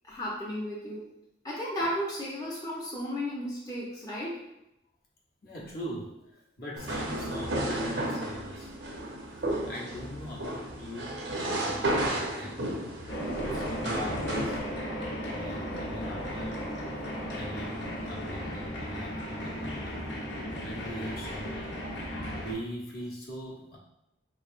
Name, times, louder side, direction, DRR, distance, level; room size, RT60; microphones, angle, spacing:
voice 1, 0.0-1.0 1.4-4.4, equal, 20° left, -6 dB, 0.6 m, -34 dB
voice 2, 5.4-8.7 9.6-12.9 13.2-14.6 15.3-19.9 20.5-21.6 22.4-23.8, equal, 55° left, -4 dB, 0.9 m, -41 dB
sound 1, 6.8-14.6, right 1 dB, 85° right, 0.8 m, -32 dB
sound 2, 13.1-22.5, equal, 85° left, 1.0 m, -36 dB
4.6 x 3.1 x 2.5 m, 0.86 s
head